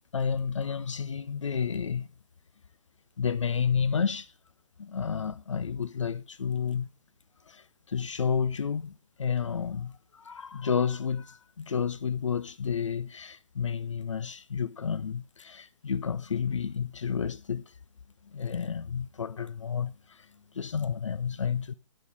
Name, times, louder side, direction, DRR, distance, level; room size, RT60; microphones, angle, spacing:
voice 1, 0.1-2.1 3.2-4.3 4.8-6.9 7.5-17.7 18.3-20.3 20.5-21.7, left 6 dB, 70° left, 0.6 m, -31 dB
11.0 x 6.4 x 6.5 m
figure-of-eight pair, 130°, 17 cm